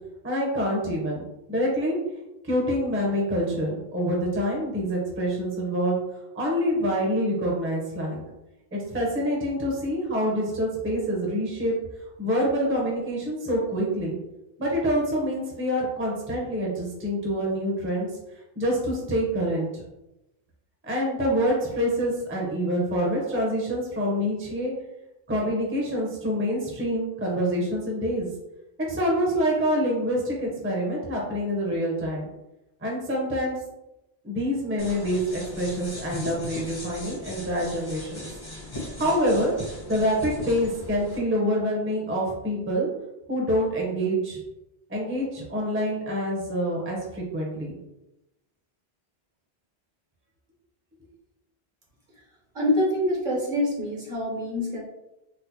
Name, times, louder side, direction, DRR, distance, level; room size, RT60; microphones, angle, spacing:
voice 1, 0.2-1.2 1.5-2.0 2.4-6.0 6.3-8.2 8.7-11.7 12.2-14.2 14.6-18.1 18.6-19.8 20.8-24.7 25.3-28.3 28.9-32.3 32.8-33.6 34.2-38.3 39.0-39.5 39.9-42.9 43.3-44.4 44.9-47.7, equal, 15° right, -3 dB, 0.6 m, -26 dB
sound 1, 34.8-41.2, left 1 dB, 25° left, 0.7 m, -38 dB
voice 2, 52.5-54.8, left 1 dB, 55° right, -3 dB, 0.9 m, -25 dB
4.1 x 2.0 x 2.8 m, 0.94 s
omnidirectional pair, 1.1 m